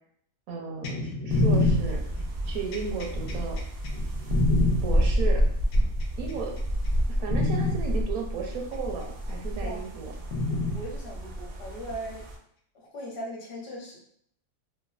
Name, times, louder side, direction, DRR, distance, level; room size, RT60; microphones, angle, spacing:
voice 1, 0.5-2.0 2.5-3.6 4.8-5.4 6.2-6.5 7.1-10.1, right 5 dB, 85° right, 1 dB, 1.1 m, -34 dB
sound 1, 0.8-4.8 5.7-6.4 6.8-7.0 7.3-7.8 8.9-9.0 10.3-10.8 11.9-12.0, left 2 dB, 80° left, 1.0 m, -26 dB
sound 2, 1.3-12.4, equal, 65° right, 0.6 m, -29 dB
voice 2, 10.7-12.3 12.7-14.0, right 1 dB, 50° left, -2 dB, 1.0 m, -38 dB
3.1 x 2.1 x 2.4 m, 0.66 s
omnidirectional pair, 1.4 m